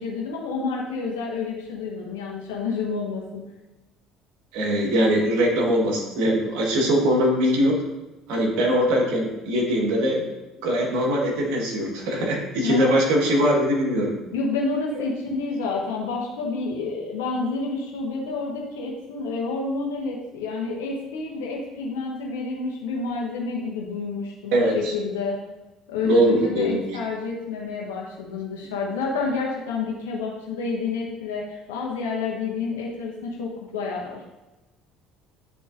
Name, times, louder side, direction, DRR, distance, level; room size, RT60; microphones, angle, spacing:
voice 1, 0.0-3.4 12.6-13.0 14.3-25.4 25.9-34.3, left 4 dB, 85° left, -2 dB, 0.9 m, -29 dB
voice 2, 4.5-7.8 8.3-10.3 10.6-14.1 24.5-24.9 26.0-26.8, equal, 75° right, -1 dB, 1.6 m, -21 dB
9.8 x 3.9 x 2.6 m, 1.1 s
hypercardioid pair, 75°, 0 cm